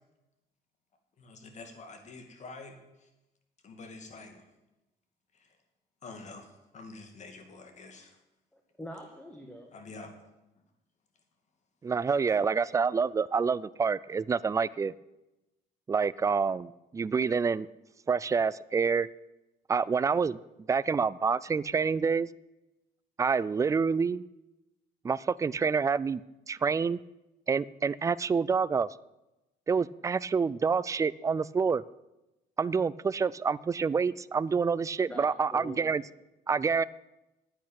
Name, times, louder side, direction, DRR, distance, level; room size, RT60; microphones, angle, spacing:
voice 1, 1.2-3.1 3.6-4.5 5.3-5.6 6.0-8.2 9.7-10.1 12.1-12.2, left 3 dB, 45° left, 5 dB, 2.5 m, -47 dB
voice 2, 8.5-9.7 35.1-35.8, left 1 dB, 5° left, 2 dB, 1.7 m, -44 dB
voice 3, 11.8-14.9 15.9-17.7 18.1-19.1 19.7-20.4 20.7-22.3 23.2-24.2 25.0-26.2 26.5-27.0 27.5-28.9 29.7-31.8 32.6-36.0 36.5-36.8, right 5 dB, 20° right, 19 dB, 0.4 m, -27 dB
10.0 x 8.6 x 9.1 m, 0.98 s
cardioid pair, 110°, 17 cm